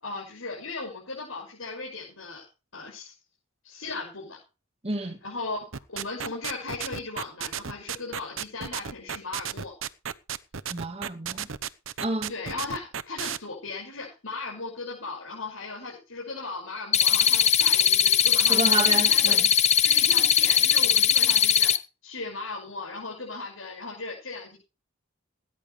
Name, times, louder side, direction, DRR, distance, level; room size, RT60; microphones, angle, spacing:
voice 1, 0.0-2.4 2.7-3.1 3.6-4.4 5.2-9.7 12.3-19.4 19.8-21.7 22.0-24.6, left 3 dB, 80° left, 6.3 m, -37 dB
voice 2, 4.8-5.2 10.7-11.5 12.0-12.3 18.5-19.5, right 2 dB, 30° right, 1.9 m, -30 dB
sound 1, 5.7-13.4, right 8 dB, 75° right, 0.9 m, -33 dB
sound 2, 16.9-21.8, left 9 dB, 30° left, 0.9 m, -20 dB
19.0 x 10.5 x 3.4 m
head